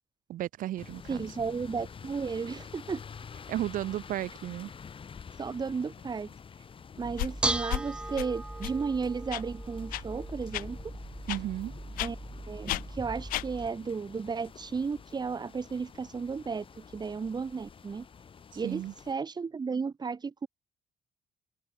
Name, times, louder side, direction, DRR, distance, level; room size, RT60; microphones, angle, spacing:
voice 1, 0.3-1.4 3.5-4.7 11.3-11.7 18.5-18.9, right 13 dB, 75° right, 1.4 m, -34 dB
sound 1, 0.8-19.1, left 6 dB, 40° left, 3.3 m, -48 dB
voice 2, 1.1-3.0 5.4-6.3 7.0-10.8 12.0-12.2 12.5-18.1 18.6-20.5, right 5 dB, 30° right, 2.2 m, -34 dB
Bell / Dishes pots and pans, 7.0-13.7, right 1 dB, 5° right, 0.5 m, -37 dB
sound 2, 7.2-7.3 7.7-7.8 8.2-8.3 8.6-8.8 9.3-9.4 9.9-10.0 10.5-10.6 11.3-11.4 12.0-12.1 12.7-12.8 13.3-13.5, left 17 dB, 90° left, 1.0 m, -32 dB
open air
cardioid pair, 110°, 14 cm